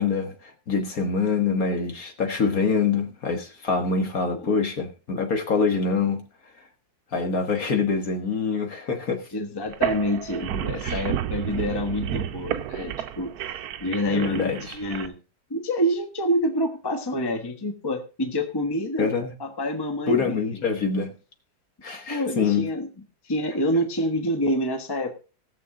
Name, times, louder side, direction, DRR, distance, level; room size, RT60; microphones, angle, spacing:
voice 1, 0.0-6.2 7.1-9.3 10.8-11.0 14.1-14.8 19.0-19.3 20.1-21.1 21.8-22.7, left 5 dB, 50° left, 1.8 m, -25 dB
voice 2, 9.3-15.1 15.5-19.1 19.4-20.6 22.1-22.9 23.2-25.2, equal, 15° left, 1.1 m, -27 dB
sound 1, 9.6-15.1, right 10 dB, 65° right, 1.0 m, -31 dB
17.0 x 7.0 x 3.8 m
omnidirectional pair, 2.0 m